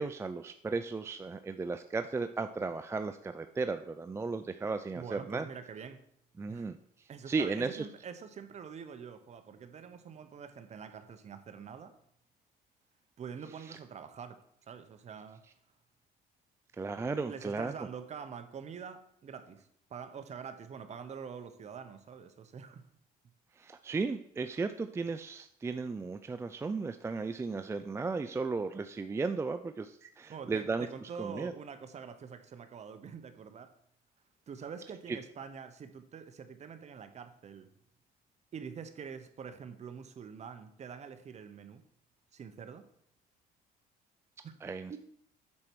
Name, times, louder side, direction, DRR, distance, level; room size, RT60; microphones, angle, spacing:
voice 1, 0.0-5.5 6.4-6.8 7.3-7.9 13.7-13.8 16.8-17.7 23.6-31.5 35.1-35.2 44.6-45.0, right 4 dB, 15° right, 9 dB, 0.4 m, -35 dB
voice 2, 4.9-6.0 6.5-6.7 7.1-12.0 13.2-14.4 14.7-15.4 17.3-22.9 30.3-33.7 34.5-37.7 38.5-41.8 42.3-42.9 44.4-44.5 44.9-45.0, right 6 dB, 40° right, 9 dB, 1.0 m, -45 dB
8.7 x 4.4 x 6.2 m, 0.68 s
cardioid pair, 110°, 17 cm